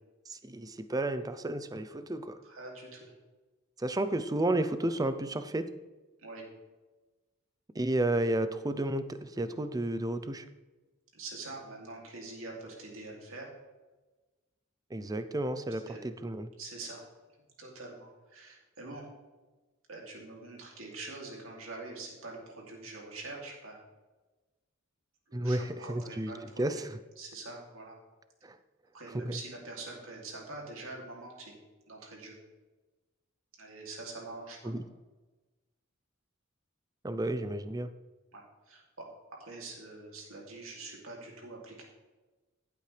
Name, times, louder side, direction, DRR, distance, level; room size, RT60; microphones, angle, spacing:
voice 1, 0.3-2.4 3.8-5.7 7.7-10.4 14.9-16.5 25.3-26.3 26.6-27.0 28.4-28.6 29.1-29.4 34.6-34.8 37.0-37.9, right 1 dB, 20° right, 11 dB, 0.5 m, -32 dB
voice 2, 2.4-3.1 6.2-6.5 11.1-13.5 15.7-16.0 16.6-17.0 17.6-19.1 19.9-23.8 25.3-26.8 27.2-28.0 28.9-31.5 31.9-32.4 33.6-34.7 38.3-39.1 39.4-41.8, right 3 dB, 75° right, -2 dB, 2.8 m, -45 dB
15.0 x 8.5 x 3.4 m, 1.2 s
head